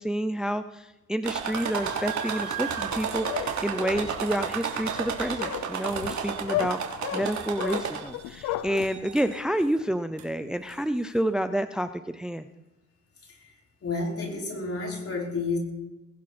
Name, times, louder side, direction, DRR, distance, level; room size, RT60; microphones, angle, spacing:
voice 1, 0.0-6.8 7.1-12.5, right 1 dB, ahead, 11 dB, 0.6 m, -29 dB
sound 1, 1.2-8.3 8.8-9.4 10.2-10.3 10.7-10.8, right 6 dB, 70° right, 2.9 m, -32 dB
sound 2, 2.9-8.9, left 14 dB, 90° left, 0.6 m, -34 dB
voice 2, 13.8-15.6, left 3 dB, 50° left, -1 dB, 5.5 m, -30 dB
20.0 x 11.5 x 4.3 m, 1.0 s
cardioid pair, 90°, 30 cm